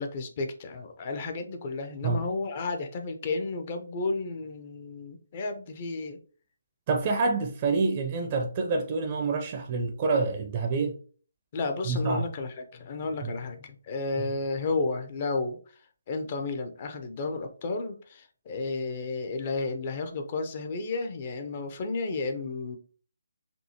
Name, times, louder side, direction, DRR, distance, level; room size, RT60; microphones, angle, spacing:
voice 1, 0.0-6.2 11.5-15.6 16.1-22.8, left 3 dB, 35° left, 0.6 m, -32 dB
voice 2, 6.9-10.9 11.9-12.2 13.2-13.3, right 4 dB, 30° right, 0.5 m, -27 dB
5.3 x 2.7 x 2.8 m
figure-of-eight pair, 140°, 0 cm